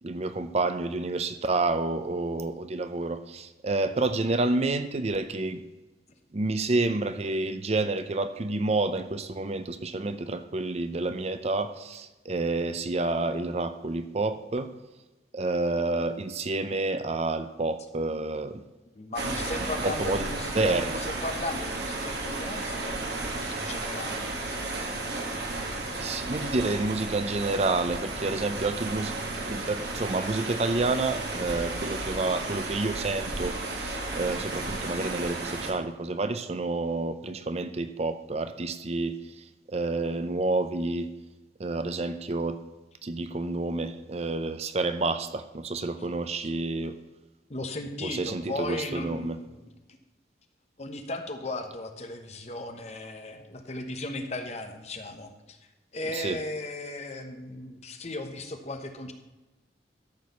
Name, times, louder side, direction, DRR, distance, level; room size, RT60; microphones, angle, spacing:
voice 1, 0.0-5.6 6.3-14.7 15.3-18.6 19.8-21.0 26.0-41.1 41.6-42.6 43.0-47.0 48.0-49.4 56.1-56.4, right 2 dB, 35° right, 10 dB, 0.5 m, -29 dB
voice 2, 18.9-24.3 46.4-46.5 47.5-50.0 50.8-55.6 55.9-59.1, left 2 dB, 40° left, 6 dB, 1.1 m, -36 dB
sound 1, 19.1-35.7, right 2 dB, 65° right, 2.0 m, -33 dB
13.0 x 4.7 x 6.9 m, 1.1 s
head